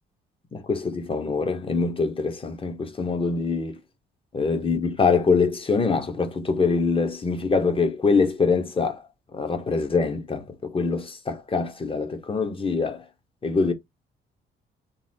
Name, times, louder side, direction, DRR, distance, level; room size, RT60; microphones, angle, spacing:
voice 1, 0.5-3.8 4.3-9.0 9.3-13.0 13.4-13.7, left 4 dB, 25° left, 1.0 m, -24 dB
3.9 x 2.0 x 4.0 m
cardioid pair, 90°, 20 cm